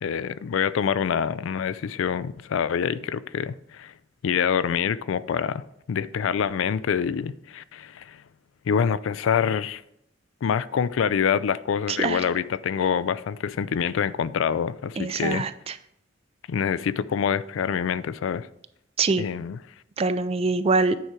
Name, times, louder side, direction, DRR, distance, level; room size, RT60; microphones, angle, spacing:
voice 1, 0.0-3.9 4.2-8.2 8.7-9.8 10.4-15.5 16.5-18.5 19.2-19.6, left 7 dB, 85° left, 17 dB, 0.4 m, -26 dB
voice 2, 11.9-12.2 15.0-15.7 19.0-19.3 20.0-21.0, right 4 dB, 30° right, 13 dB, 0.4 m, -24 dB
9.3 x 4.8 x 4.5 m, 0.76 s
head